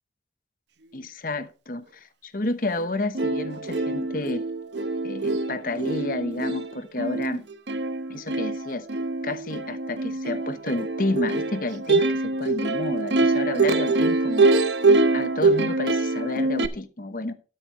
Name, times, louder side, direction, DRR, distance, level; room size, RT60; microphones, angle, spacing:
voice 1, 0.9-4.4 5.0-7.4 8.1-8.9 9.2-14.5 15.1-17.3, left 2 dB, 50° left, 1.0 m, -30 dB
Plucked string instrument, 2.8-2.9 3.1-16.7, right 3 dB, 80° right, 1.0 m, -24 dB
12.5 x 9.9 x 3.1 m
head